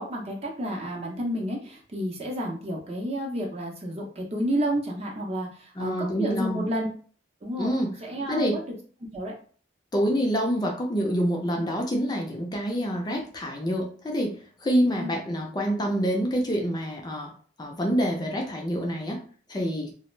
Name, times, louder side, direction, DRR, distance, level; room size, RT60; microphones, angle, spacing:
voice 1, 0.0-6.9 7.4-8.6 9.1-9.3 15.0-15.2, equal, 35° right, -1 dB, 0.6 m, -31 dB
voice 2, 5.8-6.6 7.6-7.9 8.3-8.6 9.9-17.3 17.6-19.2 19.5-19.9, equal, 20° left, 1 dB, 0.4 m, -27 dB
2.3 x 2.0 x 3.1 m, 0.42 s
head